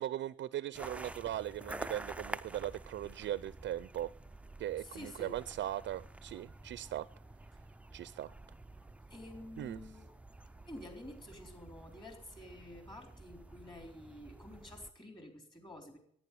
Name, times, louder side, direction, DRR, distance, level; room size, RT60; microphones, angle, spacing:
voice 1, 0.0-4.1 4.6-7.1 7.9-8.3 9.6-9.8, right 12 dB, 70° right, 16 dB, 0.5 m, -39 dB
sound 1, 0.7-14.9, right 2 dB, 5° right, 0.4 m, -49 dB
voice 2, 4.8-5.4 9.1-10.1 10.6-16.0, left 1 dB, 25° left, 3 dB, 3.8 m, -50 dB
11.0 x 9.3 x 9.9 m, 0.67 s
cardioid pair, 90°, 20 cm